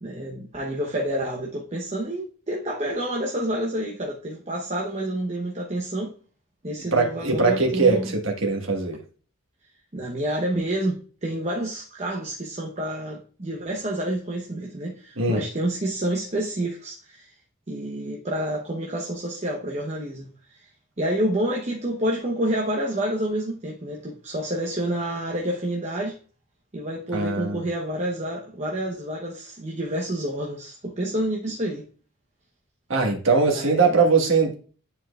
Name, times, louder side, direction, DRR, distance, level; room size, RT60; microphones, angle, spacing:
voice 1, 0.0-6.1 6.6-8.1 9.9-17.3 17.7-20.7 21.0-26.2 26.7-31.8 33.5-33.9, right 1 dB, 35° right, 0.9 m, -28 dB
voice 2, 6.9-9.0 15.2-15.4 27.1-27.6 32.9-34.5, right 4 dB, 65° right, 1.6 m, -21 dB
10.0 x 4.5 x 2.4 m
head